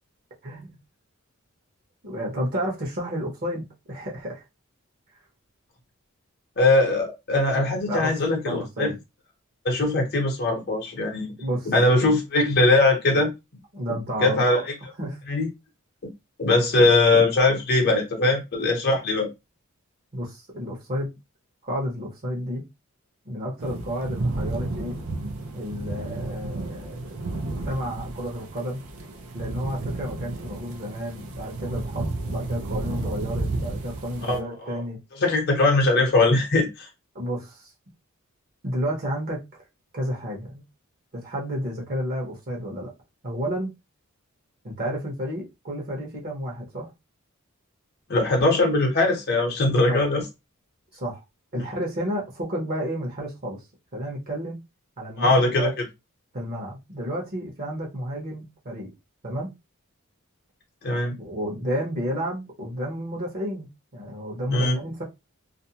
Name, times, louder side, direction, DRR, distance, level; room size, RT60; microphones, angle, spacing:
voice 1, 0.4-0.8 2.0-4.5 7.9-8.1 8.5-9.0 11.4-11.7 13.7-14.6 15.0-15.2 20.1-21.1 21.6-22.7 23.2-25.0 25.5-28.8 29.3-35.0 37.1-37.7 38.6-39.4 39.9-40.6 41.1-42.9 43.2-43.7 44.6-46.9 49.9-50.1 50.9-51.2 51.5-53.6 53.9-54.6 55.0-55.7 56.3-58.9 59.2-59.5 61.2-65.0, equal, 45° right, 0.9 m, -31 dB
voice 2, 6.6-8.9 9.6-11.3 11.7-13.3 14.2-14.6 15.3-15.5 16.4-19.3 34.3-34.7 35.2-36.9 48.1-50.2 55.2-55.7 60.8-61.2 64.5-64.8, left 2 dB, 50° left, 0.7 m, -21 dB
sound 1, 23.6-34.4, right 2 dB, 75° right, 0.5 m, -32 dB
2.5 x 2.1 x 2.8 m
head